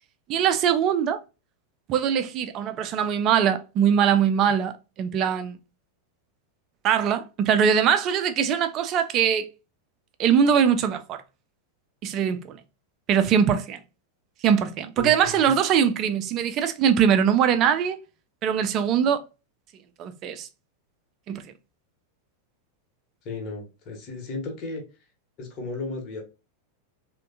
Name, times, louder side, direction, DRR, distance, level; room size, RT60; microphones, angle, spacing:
voice 1, 0.3-1.2 1.9-5.6 6.8-9.5 10.2-11.2 12.0-12.6 13.1-13.8 14.4-18.0 18.4-19.2 20.0-20.5 21.3-21.4, right 8 dB, 35° right, 0.4 m, -22 dB
voice 2, 15.0-15.5 23.2-24.8 25.4-26.2, left 2 dB, 35° left, 1.0 m, -34 dB
3.3 x 2.2 x 2.6 m
figure-of-eight pair, 90°, 0 cm